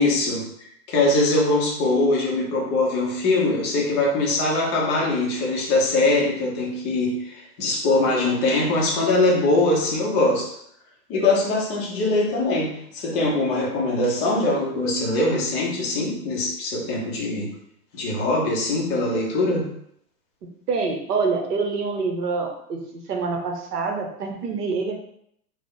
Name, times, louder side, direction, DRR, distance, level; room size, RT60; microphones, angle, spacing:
voice 1, 0.0-10.5 11.1-17.5 17.9-19.7, left 2 dB, 15° left, -3 dB, 0.4 m, -22 dB
voice 2, 20.7-24.9, right 4 dB, 70° right, 2 dB, 0.9 m, -26 dB
3.3 x 2.0 x 3.8 m, 0.70 s
hypercardioid pair, 120°, 49 cm